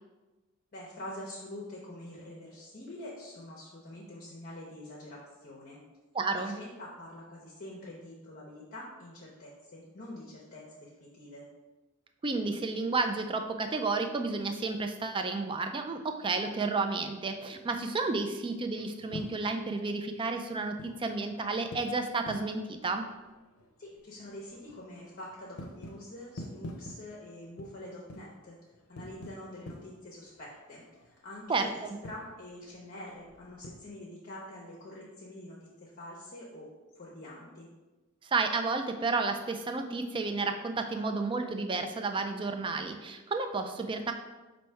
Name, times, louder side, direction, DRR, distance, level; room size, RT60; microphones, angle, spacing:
voice 1, 0.7-5.8 6.3-11.4 23.8-28.6 28.9-36.7 36.9-37.7, left 1 dB, 45° left, -4 dB, 0.7 m, -46 dB
voice 2, 6.1-6.5 12.2-23.1 31.5-32.0 38.3-44.1, right 3 dB, 25° right, 6 dB, 0.3 m, -31 dB
sound 1, 18.6-33.9, left 1 dB, 80° left, 0.6 m, -49 dB
4.6 x 2.6 x 4.4 m, 1.2 s
head